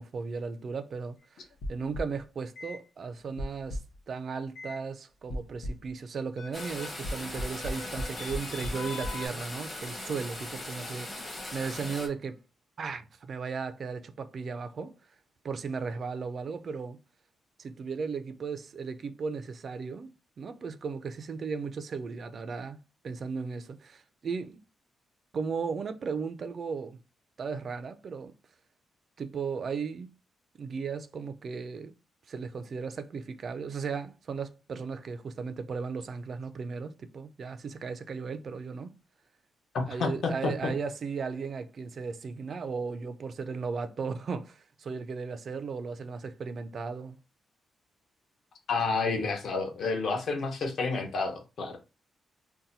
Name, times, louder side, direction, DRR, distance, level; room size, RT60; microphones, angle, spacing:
voice 1, 0.0-3.8 4.1-12.4 12.8-14.9 15.4-17.0 17.6-20.1 20.4-24.6 25.3-27.0 27.4-28.3 29.2-30.1 30.6-31.9 32.3-38.9 39.9-47.2, right 5 dB, 40° right, 0.3 m, -36 dB
sound 1, 1.6-2.2 2.6-2.8 3.4-4.0 4.5-4.8 5.3-5.9 6.4-9.3, left 1 dB, 80° left, 0.7 m, -37 dB
sound 2, 6.5-12.1, left 1 dB, 15° left, 0.7 m, -40 dB
voice 2, 39.7-40.7 48.7-51.8, left 4 dB, 50° left, 0.8 m, -30 dB
2.7 x 2.1 x 4.0 m
wide cardioid pair, 175°, 0 cm